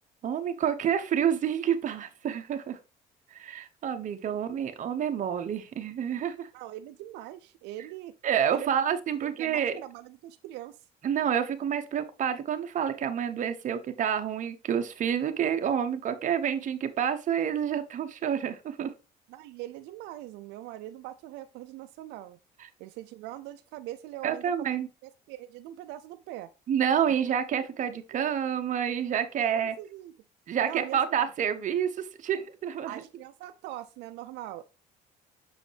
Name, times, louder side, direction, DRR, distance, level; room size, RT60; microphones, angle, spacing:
voice 1, 0.2-2.8 3.3-6.5 8.2-9.8 11.0-18.9 24.2-24.9 26.7-29.7 30.5-33.0, right 8 dB, 50° right, 0.9 m, -28 dB
voice 2, 4.3-4.6 6.5-8.2 8.5-8.7 9.2-10.9 19.3-22.4 22.8-24.7 25.0-26.5 29.4-30.1 30.6-31.2 32.8-34.7, right 14 dB, 90° right, 0.4 m, -42 dB
6.5 x 4.9 x 3.3 m
cardioid pair, 110°, 17 cm